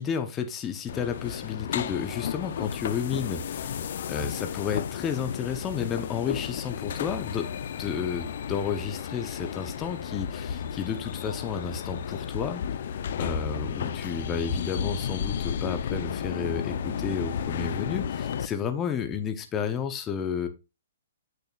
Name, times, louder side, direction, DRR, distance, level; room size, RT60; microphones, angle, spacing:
voice 1, 0.0-7.5 7.8-20.5, left 7 dB, 15° left, 7 dB, 0.7 m, -32 dB
sound 1, 0.9-18.5, left 8 dB, 55° left, 0.5 m, -33 dB
7.9 x 6.7 x 2.3 m, 0.27 s
hypercardioid pair, 155°, 0 cm